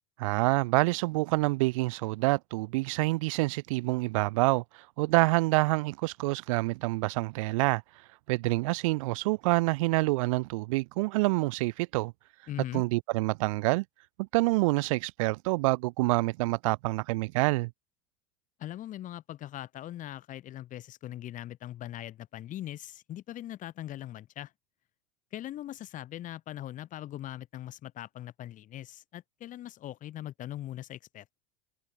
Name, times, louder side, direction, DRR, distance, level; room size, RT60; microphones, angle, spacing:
voice 1, 0.2-7.8 8.3-12.1 12.7-13.8 14.2-17.7, right 23 dB, 70° right, 0.5 m, -27 dB
voice 2, 12.5-12.8 18.6-24.5 25.3-31.4, left 13 dB, 45° left, 3.7 m, -41 dB
hypercardioid pair, 80°, 18 cm